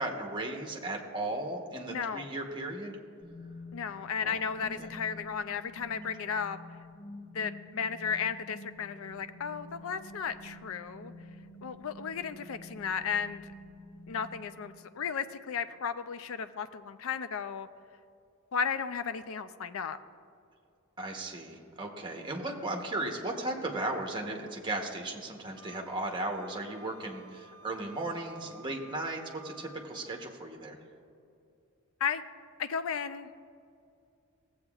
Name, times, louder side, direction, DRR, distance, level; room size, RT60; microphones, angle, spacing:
voice 1, 0.0-3.0 4.2-4.4 4.8-4.9 21.0-30.8, right 2 dB, 20° right, 2 dB, 0.9 m, -36 dB
voice 2, 1.9-2.3 3.7-6.6 7.3-11.1 11.6-13.4 14.1-17.7 18.5-20.0 32.0-32.2 32.6-33.3, left 6 dB, 65° left, 11 dB, 0.4 m, -34 dB
sound 1, 3.2-15.2, left 2 dB, 30° left, 1.1 m, -49 dB
Wind instrument woodwind instrument, 25.6-30.1, right 2 dB, 70° right, 0.6 m, -54 dB
16.0 x 7.8 x 2.4 m, 2.5 s
head